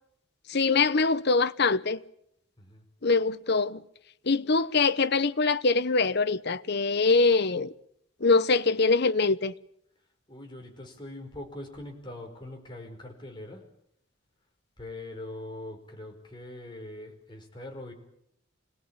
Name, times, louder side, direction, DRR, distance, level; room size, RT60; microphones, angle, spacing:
voice 1, 0.5-2.0 3.0-3.8 4.3-7.7 8.2-9.5, left 4 dB, 55° left, 0.9 m, -23 dB
voice 2, 10.3-13.6 14.8-17.9, left 1 dB, 25° left, 5.0 m, -42 dB
26.0 x 19.0 x 8.9 m
head